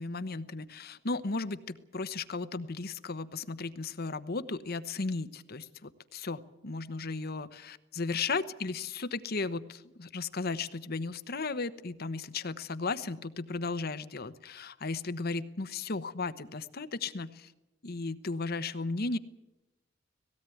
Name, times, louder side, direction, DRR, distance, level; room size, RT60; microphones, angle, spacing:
voice 1, 0.0-17.5 17.8-19.2, left 3 dB, 55° left, 12 dB, 1.0 m, -35 dB
18.5 x 17.0 x 9.3 m, 0.96 s
head